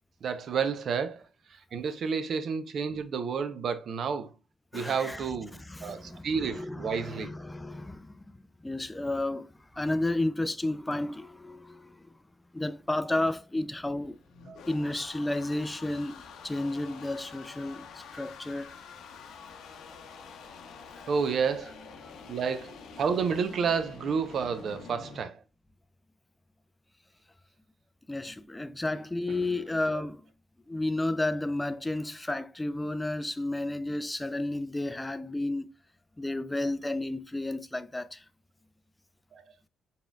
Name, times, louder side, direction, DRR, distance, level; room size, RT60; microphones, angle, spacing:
voice 1, 0.2-1.2 1.7-4.3 4.7-7.3 14.5-14.6 21.1-21.7 22.3-25.4 29.3-29.5 29.9-30.0 39.3-39.4, right 6 dB, 60° right, 0.6 m, -30 dB
voice 2, 4.7-5.3 5.6-12.0 12.5-14.2 14.7-16.1 16.4-17.9 18.1-18.7 22.0-22.1 28.1-30.2 30.7-35.7 36.2-38.2, left 2 dB, 10° left, 0.4 m, -32 dB
sound 1, 14.0-25.2, left 5 dB, 75° left, 0.7 m, -47 dB
4.1 x 3.7 x 2.3 m
cardioid pair, 95°, 0 cm